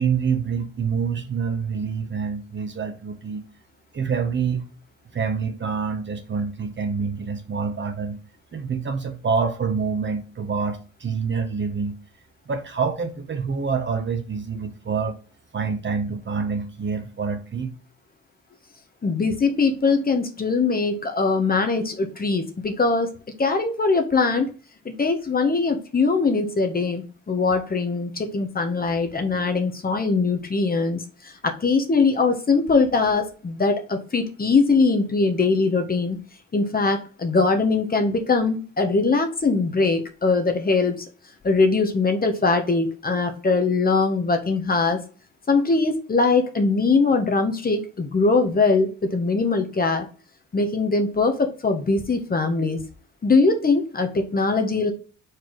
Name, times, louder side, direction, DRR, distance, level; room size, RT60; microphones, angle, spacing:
voice 1, 0.0-3.5 3.9-4.6 5.1-8.2 8.5-12.0 12.5-15.2 15.5-17.7, right 5 dB, 40° right, 1.2 m, -26 dB
voice 2, 19.0-23.1 23.4-24.5 24.8-36.2 36.5-41.0 41.4-45.0 45.5-50.0 50.5-52.8 53.2-54.9, left 4 dB, 30° left, 1.2 m, -21 dB
4.7 x 4.5 x 4.6 m
cardioid pair, 90°, 30 cm